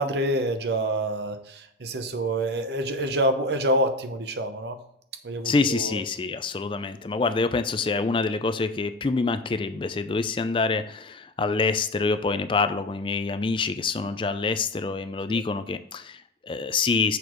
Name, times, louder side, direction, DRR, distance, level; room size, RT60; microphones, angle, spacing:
voice 1, 0.0-4.8 5.2-6.0 15.3-15.4, right 1 dB, 70° right, 8 dB, 0.8 m, -27 dB
voice 2, 5.4-17.2, left 4 dB, 30° left, 11 dB, 0.3 m, -26 dB
6.8 x 6.2 x 3.0 m, 0.73 s
head